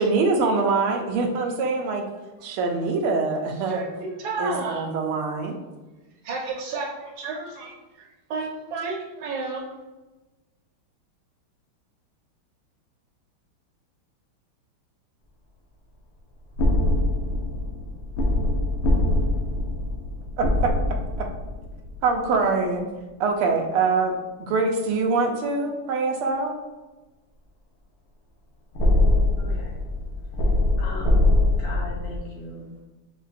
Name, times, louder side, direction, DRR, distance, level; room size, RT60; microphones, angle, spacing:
voice 1, 0.0-2.0 2.4-3.8 4.4-5.6 20.4-20.5 22.0-22.9 23.2-26.6, right 4 dB, 85° right, 3 dB, 1.5 m, -24 dB
voice 2, 3.7-4.9 6.2-9.7, right 4 dB, 70° right, 0 dB, 1.4 m, -31 dB
sound 1, 16.6-22.2 28.7-32.2, left 2 dB, 85° left, 0.8 m, -23 dB
voice 3, 29.4-29.8 30.4-30.5 30.8-31.3 31.6-32.8, left 2 dB, 65° left, -5 dB, 1.7 m, -39 dB
5.6 x 2.7 x 2.4 m, 1.1 s
omnidirectional pair, 2.4 m